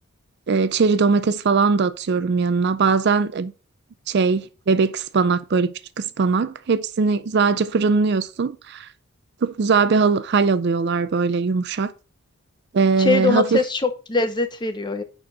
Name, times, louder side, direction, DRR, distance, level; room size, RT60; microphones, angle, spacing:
voice 1, 0.5-3.5 4.1-8.9 9.4-11.9 12.7-13.6, right 4 dB, 50° right, 0.4 m, -20 dB
voice 2, 13.0-15.0, left 3 dB, 20° left, 0.6 m, -22 dB
9.8 x 4.4 x 3.9 m
head